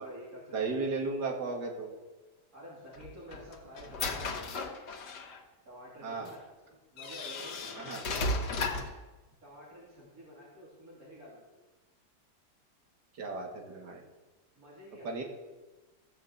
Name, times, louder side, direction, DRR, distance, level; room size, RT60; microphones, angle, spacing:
voice 1, 0.0-0.8 2.5-4.5 5.6-6.4 6.9-8.7 9.4-11.4 14.5-15.2, equal, 60° right, -6 dB, 3.3 m, -49 dB
voice 2, 0.5-1.9 6.0-6.3 7.8-8.0 13.2-14.0 15.0-15.2, right 3 dB, 85° right, 0 dB, 2.3 m, -35 dB
sound 1, 2.9-5.4 6.3-6.4 7.0-9.0, left 2 dB, 85° left, 1.8 m, -35 dB
14.5 x 6.0 x 7.8 m, 1.2 s
omnidirectional pair, 1.8 m